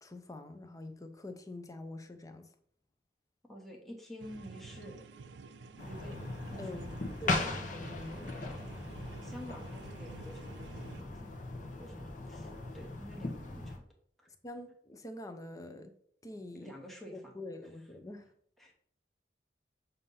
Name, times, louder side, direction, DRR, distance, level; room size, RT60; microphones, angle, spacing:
voice 1, 0.0-2.5 6.6-7.0 7.2-8.3 14.3-15.9 16.2-16.7 17.1-18.3, left 2 dB, 20° left, 0.6 m, -45 dB
voice 2, 3.5-5.0 5.8-6.2 6.5-7.9 8.1-11.3 11.8-13.8 14.2-14.3 16.5-17.4 18.6-18.7, equal, ahead, 1.0 m, -50 dB
sound 1, 4.2-11.0, right 4 dB, 85° right, 0.4 m, -50 dB
sound 2, 5.8-13.8, left 2 dB, 45° left, 0.9 m, -39 dB
7.0 x 2.7 x 5.4 m
head